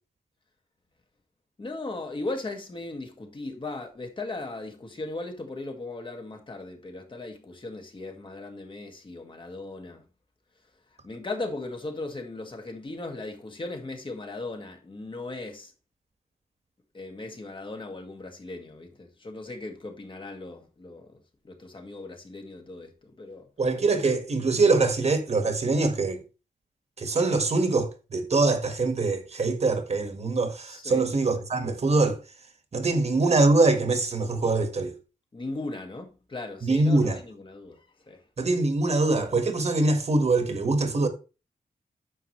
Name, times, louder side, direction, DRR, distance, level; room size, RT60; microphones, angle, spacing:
voice 1, 1.6-10.0 11.0-15.7 16.9-23.5 30.6-31.0 35.3-38.2, left 2 dB, 35° left, 2.1 m, -37 dB
voice 2, 23.6-26.2 27.0-32.2 32.7-34.9 36.6-37.2 38.4-41.1, right 3 dB, 50° right, 1.8 m, -23 dB
9.9 x 7.0 x 3.3 m
wide cardioid pair, 115°, 15 cm